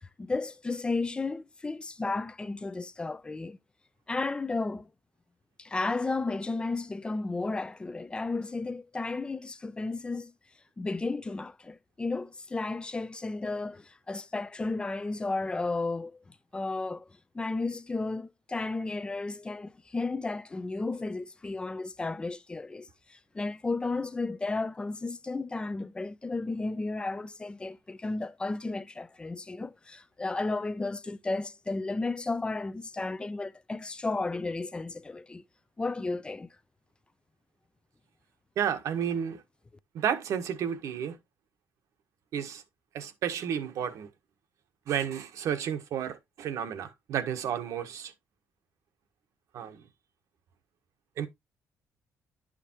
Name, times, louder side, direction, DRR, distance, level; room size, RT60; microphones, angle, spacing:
voice 1, 0.2-3.6 4.1-4.9 5.6-10.3 10.8-17.1 17.3-35.4 35.8-36.5, left 3 dB, 15° left, 0.5 m, -33 dB
voice 2, 38.6-39.4 39.9-41.2 42.3-42.6 42.9-44.1 44.9-48.1 49.5-49.8 51.2-51.3, right 8 dB, 70° right, 1.3 m, -32 dB
10.5 x 5.0 x 2.9 m
cardioid pair, 115°, 6 cm